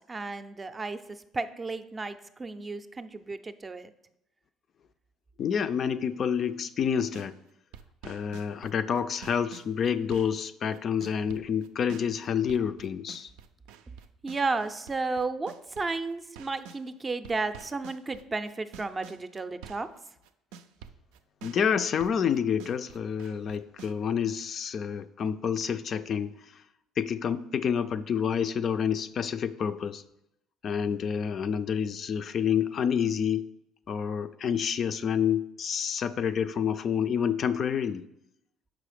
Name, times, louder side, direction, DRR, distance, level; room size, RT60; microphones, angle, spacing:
voice 1, 0.1-3.9 14.2-19.9, right 3 dB, 25° right, 10 dB, 0.5 m, -33 dB
voice 2, 5.4-7.4 8.0-13.3 21.4-26.5 27.0-30.0 30.6-33.5 33.9-38.0, left 7 dB, 50° left, 11 dB, 0.3 m, -28 dB
sound 1, 7.0-7.3 7.7-16.8 17.2-20.0 20.2-23.9, right 7 dB, 90° right, 0.4 m, -48 dB
6.0 x 4.8 x 5.0 m, 0.82 s
supercardioid pair, 90°, 0 cm